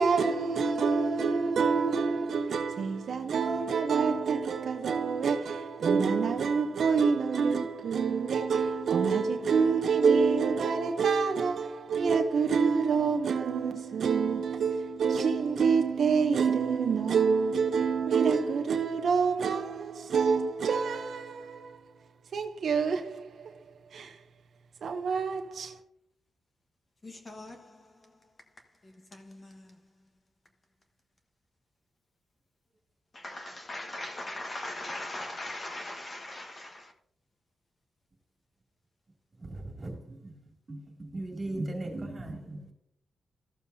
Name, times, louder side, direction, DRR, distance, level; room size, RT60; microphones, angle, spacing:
voice 1, 0.0-21.8 22.3-23.6 23.9-24.2 24.8-25.8, right 5 dB, 60° right, 0.7 m, -27 dB
voice 2, 27.0-27.7 29.1-29.6 33.1-36.9, left 1 dB, 30° left, 1.3 m, -40 dB
voice 3, 39.4-40.3 40.7-42.7, right 2 dB, 30° right, 2.5 m, -38 dB
14.0 x 7.2 x 2.7 m
wide cardioid pair, 135°, 0 cm